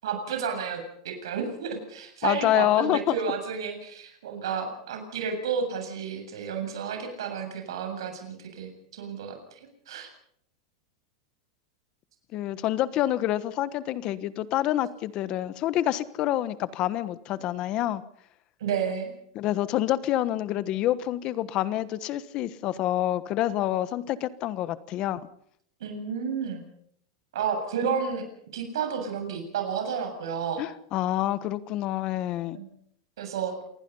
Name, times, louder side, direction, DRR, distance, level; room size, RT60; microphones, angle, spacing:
voice 1, 0.0-9.6 9.9-10.1 18.6-19.1 25.8-26.6 27.3-28.2 28.5-30.6 32.5-32.7 33.2-33.5, right 6 dB, 90° right, 5 dB, 7.5 m, -31 dB
voice 2, 2.2-3.1 12.3-18.0 19.3-25.2 30.6-32.6, left 13 dB, 35° left, 15 dB, 1.3 m, -27 dB
28.0 x 20.0 x 5.6 m, 0.67 s
supercardioid pair, 155°, 2 cm